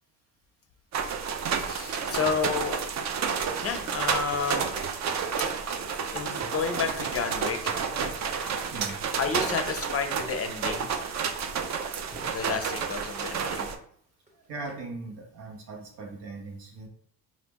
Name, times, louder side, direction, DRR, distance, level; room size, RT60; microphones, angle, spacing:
sound 1, 0.9-13.7, right 6 dB, 40° right, 0.4 m, -30 dB
voice 1, 1.6-2.8 3.6-4.7 6.1-8.2 9.2-10.9 12.2-13.7, left 5 dB, 35° left, 7 dB, 0.5 m, -31 dB
sound 2, 6.3-10.5 10.9-13.0 14.0-14.8, right 1 dB, 15° right, 1.0 m, -49 dB
voice 2, 8.7-9.0 14.4-16.9, right 3 dB, 80° right, 0 dB, 1.0 m, -39 dB
2.9 x 2.4 x 3.6 m, 0.64 s
supercardioid pair, 75°, 42 cm